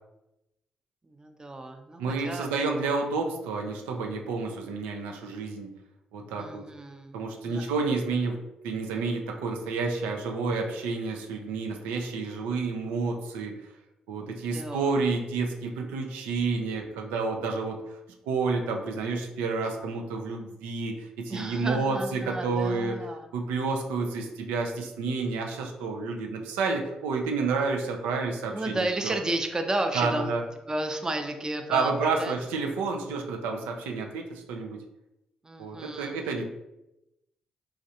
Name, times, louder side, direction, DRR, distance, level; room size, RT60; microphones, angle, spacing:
voice 1, 1.0-2.7 6.4-7.2 7.4-7.6 14.5-15.0 21.3-23.3 28.5-30.3 30.7-32.4 35.4-36.1, right 1 dB, 25° right, 5 dB, 0.5 m, -33 dB
voice 2, 2.0-5.7 6.1-6.6 7.1-8.4 8.6-13.5 14.1-18.0 18.3-23.0 23.3-29.2 29.9-30.4 31.7-34.8 35.6-36.5, right 4 dB, 85° right, 2 dB, 0.4 m, -30 dB
3.1 x 2.4 x 2.7 m, 0.90 s
hypercardioid pair, 45°, 3 cm